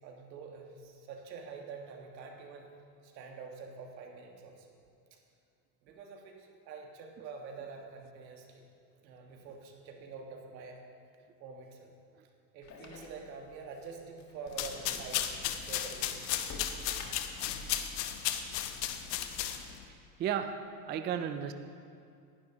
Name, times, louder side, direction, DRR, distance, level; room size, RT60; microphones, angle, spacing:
voice 1, 0.0-2.7 3.0-4.7 5.8-8.6 9.0-10.8 11.4-11.9 12.5-15.3 15.6-16.1, right 5 dB, 85° right, 1 dB, 1.8 m, -46 dB
sound 1, 12.6-17.8, left 2 dB, 35° left, 1.7 m, -50 dB
sound 2, 14.5-19.8, left 10 dB, 75° left, 1.0 m, -35 dB
voice 2, 20.2-21.5, right 8 dB, 25° right, 9 dB, 0.4 m, -34 dB
18.0 x 11.0 x 3.0 m, 2.4 s
hypercardioid pair, 105°, 50 cm